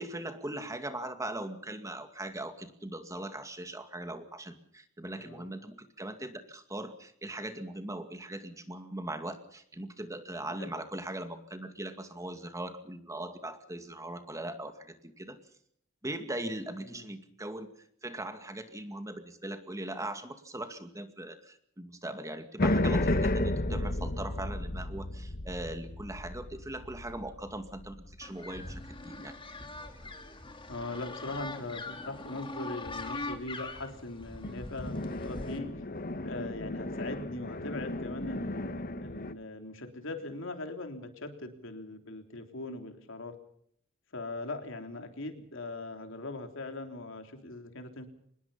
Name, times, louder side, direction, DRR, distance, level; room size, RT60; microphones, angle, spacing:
voice 1, 0.0-15.4 16.0-17.7 18.0-29.4, right 1 dB, 15° right, 8 dB, 2.2 m, -40 dB
voice 2, 5.2-5.5 10.6-10.7 16.8-17.1 30.7-35.7 36.2-43.4 44.1-48.1, left 2 dB, 65° left, 6 dB, 3.5 m, -40 dB
sound 1, 22.6-29.1 34.4-39.3, left 1 dB, 45° left, 1.3 m, -33 dB
sound 2, 28.2-35.6, left 2 dB, 25° left, 2.7 m, -42 dB
25.5 x 20.5 x 5.7 m, 0.68 s
head